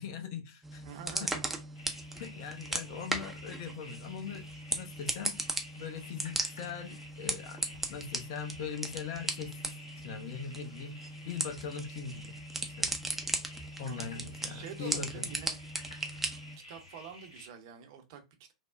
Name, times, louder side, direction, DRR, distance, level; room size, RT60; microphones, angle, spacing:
voice 1, 0.0-0.8 1.2-1.3 2.2-5.4 5.8-7.6 7.9-9.8 10.0-10.9 11.3-12.3 12.8-13.0 13.8-15.3, left 7 dB, 45° left, 0.6 m, -41 dB
sound 1, 0.6-16.6, right 2 dB, 5° right, 0.5 m, -37 dB
voice 2, 0.8-1.4 13.8-15.6 16.3-16.4 16.7-18.5, right 7 dB, 45° right, 0.7 m, -47 dB
sound 2, 1.7-17.5, left 1 dB, 70° left, 1.1 m, -52 dB
3.3 x 2.0 x 2.4 m
figure-of-eight pair, 100°, 3 cm